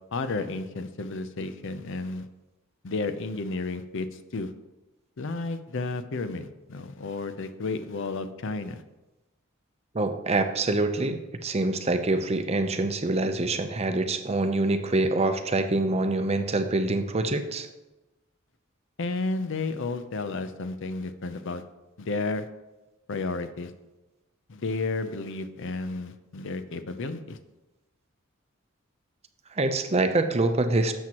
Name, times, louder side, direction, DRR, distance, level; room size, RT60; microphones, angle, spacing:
voice 1, 0.1-2.2 2.8-4.5 5.2-8.8 19.0-21.6 22.0-22.5 23.1-23.7 24.5-27.4, left 3 dB, 60° left, 11 dB, 0.6 m, -32 dB
voice 2, 9.9-17.7 29.5-30.9, right 2 dB, 30° right, 8 dB, 0.6 m, -25 dB
12.0 x 7.6 x 3.0 m, 1.1 s
head